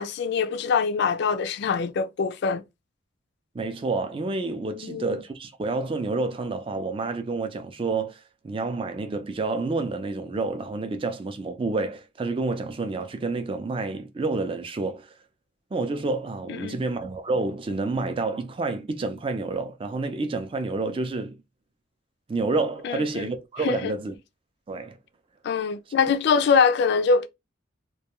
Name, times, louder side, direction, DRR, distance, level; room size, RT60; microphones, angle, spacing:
voice 1, 0.0-2.6 4.7-5.2 16.5-16.8 22.8-23.3 23.6-23.9 25.4-27.3, left 5 dB, 60° left, 0.3 m, -24 dB
voice 2, 3.5-15.1 15.7-21.4 22.3-24.1 24.7-25.0, right 3 dB, 25° right, 0.4 m, -29 dB
2.2 x 2.2 x 2.9 m
head